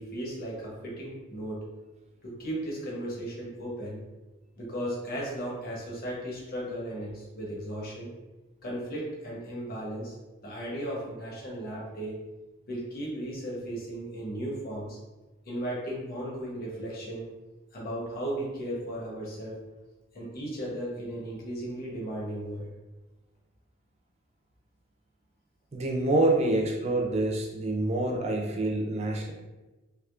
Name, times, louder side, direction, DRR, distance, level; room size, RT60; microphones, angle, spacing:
voice 1, 0.0-1.6 2.2-4.0 4.5-8.1 8.6-10.1 10.4-12.1 12.7-15.0 15.5-17.3 17.7-19.6 20.1-22.7, right 1 dB, 45° left, -4 dB, 0.9 m, -36 dB
voice 2, 25.7-29.3, right 2 dB, 30° right, 1 dB, 0.4 m, -26 dB
3.5 x 3.0 x 2.4 m, 1.1 s
head